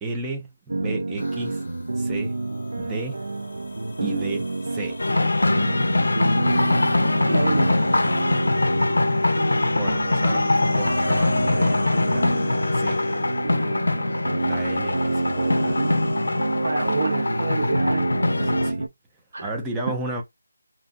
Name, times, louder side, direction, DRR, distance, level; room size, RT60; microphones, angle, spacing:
voice 1, 0.0-1.6 2.0-2.4 2.8-3.2 4.0-5.0 9.8-12.3 12.7-13.0 14.4-15.8 18.4-18.9 19.4-20.2, right 2 dB, 5° right, 0.4 m, -33 dB
sound 1, 0.7-18.9, right 2 dB, 75° right, 0.4 m, -28 dB
sound 2, 1.2-17.7, left 2 dB, 40° left, 0.6 m, -39 dB
sound 3, 5.0-18.7, left 2 dB, 80° left, 0.5 m, -23 dB
voice 2, 7.3-7.8 16.6-18.1 19.3-19.6, right 3 dB, 45° right, 0.7 m, -27 dB
2.7 x 2.3 x 2.5 m
figure-of-eight pair, 180°, 0 cm